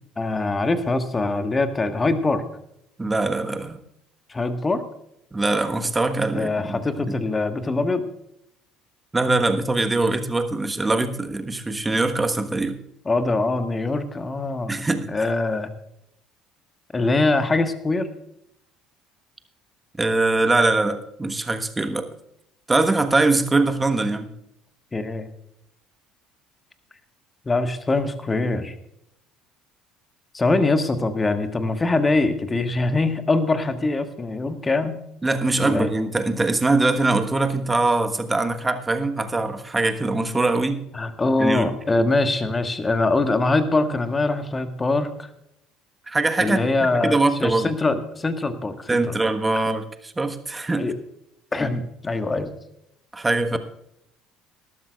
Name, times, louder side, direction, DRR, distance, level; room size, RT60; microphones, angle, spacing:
voice 1, 0.2-2.4 4.3-4.8 6.3-8.0 13.0-14.7 15.1-15.7 16.9-18.1 24.9-25.3 27.4-28.7 30.3-35.0 35.6-35.9 40.9-45.3 46.4-49.1 50.8-50.9 51.5-52.5, left 2 dB, 20° left, 9 dB, 1.5 m, -23 dB
voice 2, 3.0-3.8 5.3-6.8 7.1-7.2 9.1-12.7 14.7-15.1 20.0-22.1 22.7-24.3 35.2-40.8 41.4-41.7 46.1-46.6 46.9-47.7 48.9-50.9 53.1-53.6, right 2 dB, 15° right, 8 dB, 1.4 m, -22 dB
19.0 x 12.5 x 2.4 m, 0.79 s
figure-of-eight pair, 55°, 0 cm